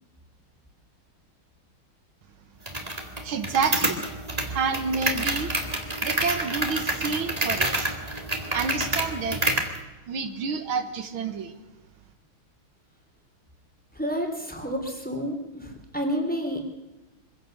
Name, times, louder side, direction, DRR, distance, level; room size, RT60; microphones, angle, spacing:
sound 1, 2.7-9.8, right 1 dB, 20° right, 2.1 m, -28 dB
voice 1, 3.2-4.0 4.5-5.5 6.0-7.9 8.5-9.4 10.1-11.6, right 5 dB, 75° right, 8 dB, 2.1 m, -29 dB
voice 2, 13.9-16.7, equal, 5° left, 3 dB, 3.0 m, -30 dB
24.0 x 16.5 x 6.6 m, 1.1 s
omnidirectional pair, 2.3 m